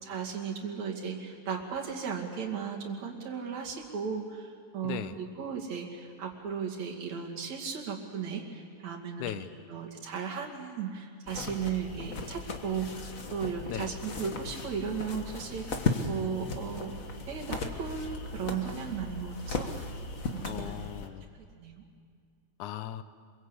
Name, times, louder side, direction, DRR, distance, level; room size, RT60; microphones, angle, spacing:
voice 1, 0.0-9.3 9.7-17.0 17.3-20.0 20.3-20.8 21.6-21.8, right 6 dB, 65° right, 0 dB, 3.7 m, -36 dB
voice 2, 4.8-5.2 9.2-9.5 13.7-13.9 20.4-21.2 22.6-23.0, left 11 dB, 85° left, 12 dB, 2.4 m, -37 dB
sound 1, 11.3-21.1, left 3 dB, 40° left, 1.3 m, -36 dB
26.0 x 22.5 x 8.3 m, 2.2 s
omnidirectional pair, 3.4 m